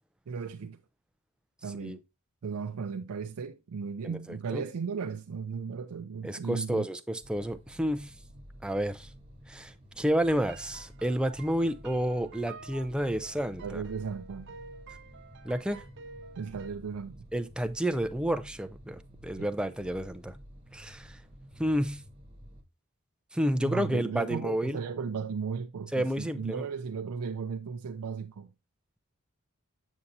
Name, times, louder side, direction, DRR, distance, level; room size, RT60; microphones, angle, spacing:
voice 1, 0.3-0.8 1.6-2.0 2.4-6.9 13.6-14.6 16.4-17.3 19.4-19.5 23.6-28.5, right 5 dB, 85° right, 0.4 m, -36 dB
voice 2, 6.2-8.1 8.6-9.1 9.5-13.8 15.4-15.8 17.3-20.3 20.7-21.2 21.6-22.0 23.3-24.8 25.9-26.6, equal, 5° right, 0.4 m, -30 dB
sound 1, 7.2-22.6, equal, 25° right, 1.1 m, -51 dB
sound 2, 10.3-16.7, right 4 dB, 55° right, 0.8 m, -50 dB
7.1 x 6.6 x 2.7 m
head